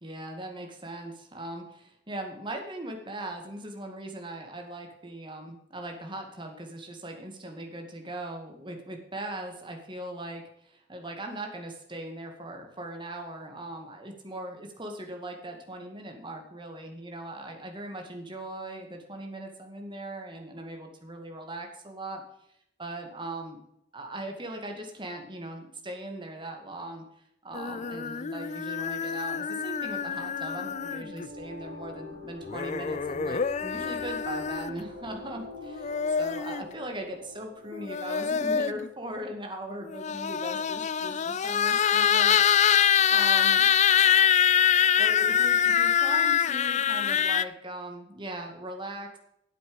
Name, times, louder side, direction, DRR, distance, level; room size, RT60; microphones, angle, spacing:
voice 1, 0.0-22.2 22.8-23.6 23.9-27.0 27.4-35.9 36.2-43.7 45.0-49.2, right 1 dB, 25° right, 3 dB, 2.2 m, -39 dB
sound 1, 27.5-31.3 32.5-34.8 35.6-36.6 37.7-38.9 39.9-47.4, left 8 dB, 40° left, 0.4 m, -25 dB
sound 2, 28.8-39.1, left 2 dB, 60° right, 3.4 m, -45 dB
9.2 x 8.2 x 6.9 m, 0.75 s
head